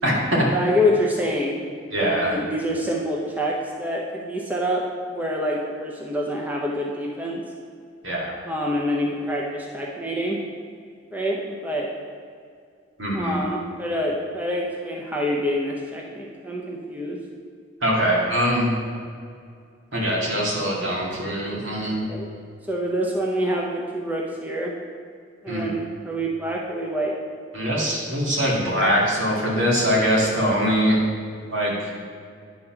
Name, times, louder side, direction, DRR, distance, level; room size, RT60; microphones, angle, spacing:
voice 1, 0.0-0.5 1.9-2.3 8.0-8.3 13.0-13.4 17.8-18.7 19.9-22.1 25.5-25.7 27.5-31.0 31.5-31.9, equal, 75° right, -4 dB, 2.1 m, -22 dB
voice 2, 0.5-1.6 2.0-7.4 8.5-10.4 11.1-11.9 13.1-17.2 21.9-22.3 22.7-24.7 25.4-27.2, equal, 10° right, -2 dB, 0.6 m, -26 dB
9.8 x 4.1 x 5.7 m, 2.3 s
head